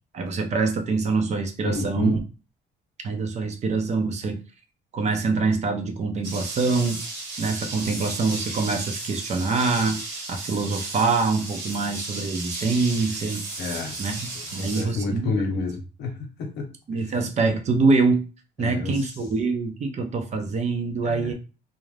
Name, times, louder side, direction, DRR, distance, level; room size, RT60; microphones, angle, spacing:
voice 1, 0.1-2.2 3.0-4.4 4.9-7.0 7.4-10.0 10.3-13.4 14.0-15.3 16.9-18.2 18.6-21.3, right 4 dB, 40° right, 5 dB, 0.6 m, -24 dB
voice 2, 1.6-2.2 13.6-14.0 14.5-16.7 17.0-17.2 18.6-19.2 21.0-21.3, left 3 dB, 75° left, 4 dB, 0.8 m, -30 dB
sound 1, 6.2-14.8, right 3 dB, 90° right, 1.4 m, -34 dB
2.5 x 2.1 x 3.2 m, 0.33 s
cardioid pair, 110°, 17 cm